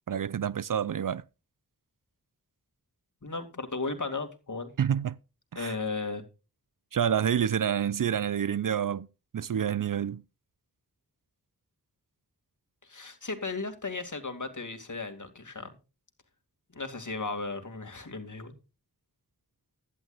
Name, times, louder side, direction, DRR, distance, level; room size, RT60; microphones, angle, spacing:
voice 1, 0.1-1.2 4.8-5.2 5.5-5.8 6.9-9.1 9.3-10.2, right 8 dB, 55° right, 0.5 m, -28 dB
voice 2, 3.2-4.7 5.6-6.2 12.8-15.8 16.7-18.5, left 3 dB, 50° left, 2.4 m, -35 dB
16.0 x 11.0 x 2.5 m
cardioid pair, 40°, 38 cm